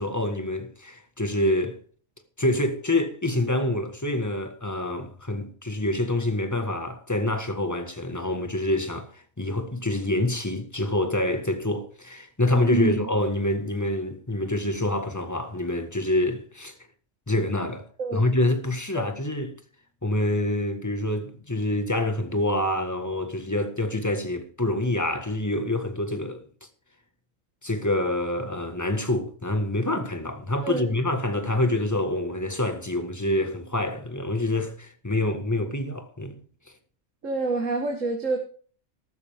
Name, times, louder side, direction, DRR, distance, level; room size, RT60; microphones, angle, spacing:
voice 1, 0.0-1.8 2.4-16.7 17.3-17.9 18.1-19.5 20.0-26.4 27.6-36.4, left 1 dB, 15° left, 1.7 m, -26 dB
voice 2, 12.6-13.1 18.0-18.3 19.0-19.1 30.6-31.0 37.2-38.4, right 3 dB, 75° right, 2.2 m, -27 dB
14.0 x 13.0 x 3.7 m
omnidirectional pair, 1.3 m